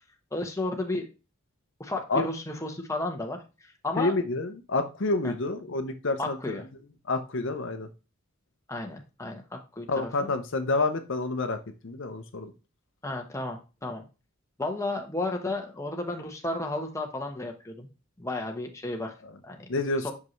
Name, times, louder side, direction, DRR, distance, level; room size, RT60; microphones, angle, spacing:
voice 1, 0.3-1.1 1.8-4.1 5.2-5.3 6.2-6.7 8.7-9.9 10.2-10.3 13.0-14.0 14.6-17.9 18.2-19.1 19.4-19.7 20.0-20.1, left 2 dB, 15° left, 3 dB, 1.0 m, -33 dB
voice 2, 4.0-6.5 7.1-7.9 9.9-11.6 11.8-12.5 19.7-20.1, left 3 dB, 60° left, 8 dB, 0.7 m, -28 dB
5.8 x 5.3 x 3.1 m, 0.30 s
head